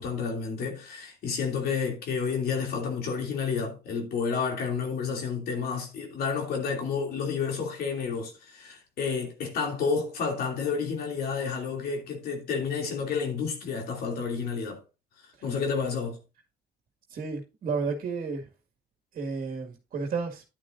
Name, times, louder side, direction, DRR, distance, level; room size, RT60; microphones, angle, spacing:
voice 1, 0.0-14.8 15.4-16.2, left 5 dB, 65° left, 2.8 m, -30 dB
voice 2, 17.1-18.5 19.1-20.4, right 4 dB, 50° right, 2.0 m, -32 dB
10.5 x 9.6 x 2.6 m
cardioid pair, 110°, 17 cm